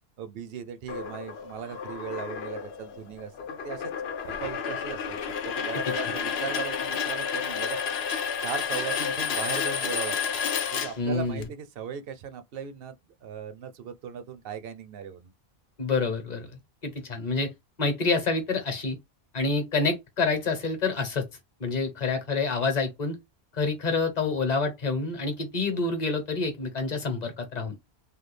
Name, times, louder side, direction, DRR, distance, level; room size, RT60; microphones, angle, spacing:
voice 1, 0.2-3.9 4.4-10.2 10.7-13.0 13.2-15.3, right 7 dB, 70° right, 0.7 m, -38 dB
sound 1, 0.9-11.4, left 7 dB, 80° left, 0.9 m, -31 dB
voice 2, 11.0-11.4 15.8-16.5 16.8-17.5 17.8-19.0 19.3-21.3 21.6-23.1 23.5-27.7, left 4 dB, 45° left, 0.9 m, -27 dB
3.2 x 2.2 x 3.2 m
omnidirectional pair, 1.1 m